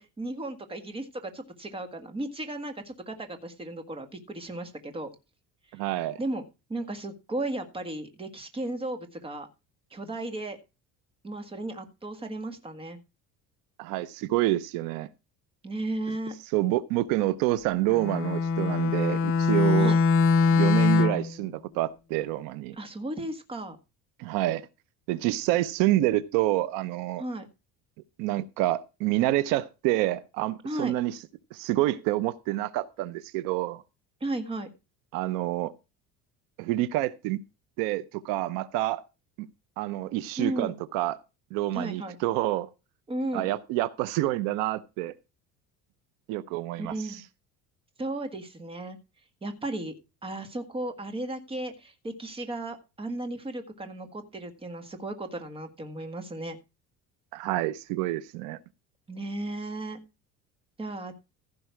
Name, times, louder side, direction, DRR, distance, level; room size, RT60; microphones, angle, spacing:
voice 1, 0.0-5.1 6.2-6.4 6.7-9.5 9.9-10.6 11.2-13.0 15.6-16.3 19.8-20.0 22.8-23.8 27.2-27.5 30.6-30.9 34.2-34.7 40.4-40.7 41.7-42.1 43.1-43.5 46.8-47.2 48.0-49.0 49.4-49.9 50.2-56.6 59.1-60.0 60.8-61.1, right 2 dB, 15° right, 1.7 m, -35 dB
voice 2, 5.7-6.2 13.8-15.1 16.5-20.0 20.5-22.8 24.2-24.6 25.1-27.2 28.2-31.2 31.5-33.8 35.1-35.7 36.6-37.4 37.8-39.0 39.4-39.5 39.8-41.2 41.5-42.7 43.3-45.1 46.3-47.2 57.3-58.6, right 15 dB, 85° right, 0.8 m, -28 dB
Bowed string instrument, 17.9-21.3, left 4 dB, 45° left, 0.6 m, -22 dB
15.5 x 5.5 x 4.7 m
cardioid pair, 145°, 32 cm